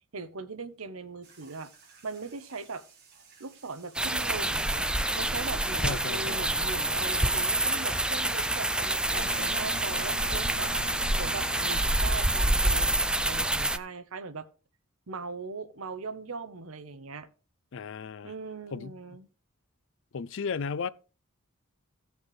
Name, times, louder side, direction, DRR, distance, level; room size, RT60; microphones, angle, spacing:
voice 1, 0.1-1.7 2.0-2.8 3.4-4.9 5.1-10.7 11.2-14.5 15.1-17.3 18.2-19.3, right 4 dB, 75° right, 0.9 m, -39 dB
sound 1, 1.2-11.1, right 4 dB, 50° right, 3.3 m, -56 dB
sound 2, 3.9-13.8, right 1 dB, 5° right, 0.4 m, -27 dB
voice 2, 5.8-6.5 17.7-18.3 18.7-18.9 20.1-20.9, left 5 dB, 60° left, 0.5 m, -34 dB
Wind instrument woodwind instrument, 9.1-12.6, equal, 30° left, 4.8 m, -44 dB
16.0 x 6.4 x 3.2 m
head